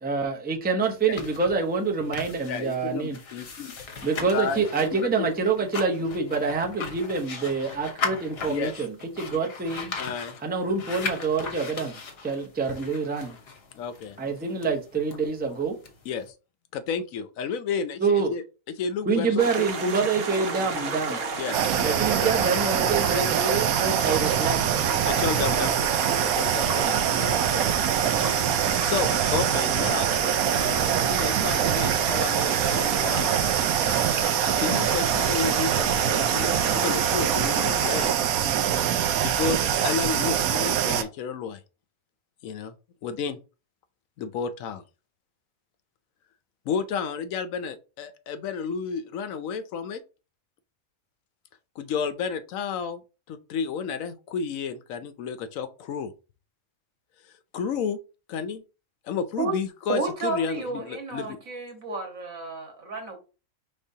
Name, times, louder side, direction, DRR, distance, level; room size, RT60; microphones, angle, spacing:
voice 1, 0.0-3.2 4.0-9.9 10.4-13.4 14.2-15.8 18.0-18.3 19.1-21.2 21.8-24.6, right 4 dB, 10° right, 0.5 m, -26 dB
sound 1, 0.8-16.3, left 4 dB, 50° left, 1.1 m, -38 dB
voice 2, 2.5-3.7 4.3-4.6 5.2-5.3 8.5-8.7 10.0-10.4 13.7-14.2 16.0-16.3 16.7-18.4 18.8-19.7 21.4-22.3 23.1-23.2 24.1-24.2 25.0-25.8 26.2-26.9 27.2-27.7 28.1-30.1 30.5-33.4 34.5-38.1 38.9-41.6 42.4-42.7 43.0-43.4 44.2-44.8 46.7-50.0 51.8-56.1 57.2-58.0 58.3-58.6 59.0-61.4, left 6 dB, 75° left, 1.0 m, -32 dB
sound 2, 19.4-38.1, right 4 dB, 55° right, 0.9 m, -31 dB
sound 3, 21.5-41.0, right 9 dB, 85° right, 1.1 m, -24 dB
voice 3, 59.9-63.2, right 3 dB, 70° right, 1.7 m, -31 dB
5.2 x 3.6 x 2.7 m
omnidirectional pair, 1.5 m